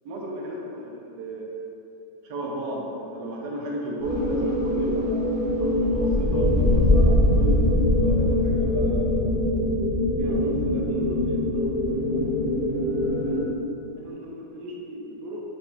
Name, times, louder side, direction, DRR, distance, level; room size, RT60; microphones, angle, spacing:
voice 1, 0.0-1.7 2.2-7.6 8.0-9.3 10.2-12.4 12.9-13.4 14.0-15.4, right 1 dB, 70° right, -2 dB, 1.2 m, -34 dB
sound 1, 4.0-13.4, left 1 dB, 20° right, 0.6 m, -22 dB
4.1 x 3.8 x 2.3 m, 2.8 s
omnidirectional pair, 1.9 m